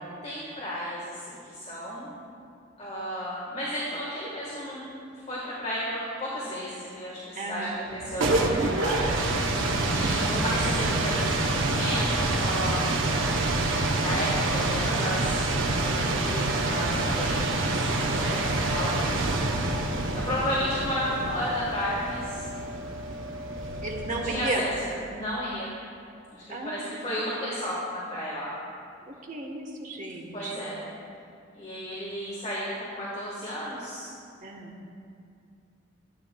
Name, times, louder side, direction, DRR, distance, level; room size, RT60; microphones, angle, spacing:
voice 1, 0.2-2.1 2.8-4.8 5.1-9.2 9.4-9.6 9.9-11.4 11.7-13.0 14.0-19.1 20.1-22.4 24.1-24.7 25.1-25.8 26.3-28.5 30.3-30.9 31.6-34.1, equal, 35° left, -6 dB, 1.5 m, -33 dB
voice 2, 7.3-7.9 23.8-24.6 26.5-27.0 29.1-30.7 34.4-34.8, right 2 dB, 40° right, 1 dB, 1.1 m, -35 dB
sound 1, 7.9-24.6, right 2 dB, 85° right, 0.8 m, -27 dB
14.0 x 9.1 x 2.3 m, 2.4 s
head